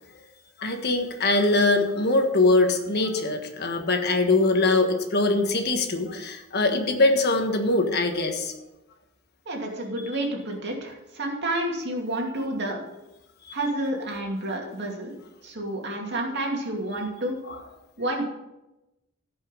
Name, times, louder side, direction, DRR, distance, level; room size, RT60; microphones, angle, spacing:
voice 1, 0.6-8.5 17.5-17.6, left 2 dB, 55° left, 5 dB, 1.4 m, -22 dB
voice 2, 9.5-12.8 13.5-15.2 15.4-17.4 18.0-18.2, right 1 dB, 55° right, 0 dB, 2.5 m, -29 dB
16.0 x 5.5 x 5.3 m, 0.97 s
head